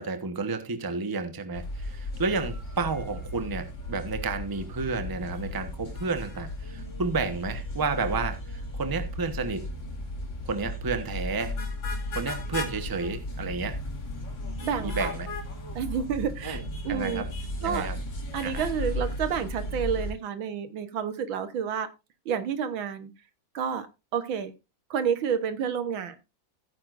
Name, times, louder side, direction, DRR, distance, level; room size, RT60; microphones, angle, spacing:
voice 1, 0.0-9.6 10.4-11.6 12.1-13.8 14.8-15.3 16.4-16.6 16.9-17.3 17.6-18.0 18.4-18.6, right 4 dB, 15° right, 9 dB, 0.8 m, -31 dB
sound 1, 1.5-20.1, left 1 dB, 70° left, 3.0 m, -35 dB
voice 2, 14.6-15.1 15.8-17.2 17.6-17.9 18.3-21.9 22.3-23.1 23.5-23.9 24.1-24.5 24.9-26.2, right 7 dB, 80° right, 11 dB, 1.9 m, -29 dB
15.5 x 9.6 x 2.5 m, 0.25 s
omnidirectional pair, 2.1 m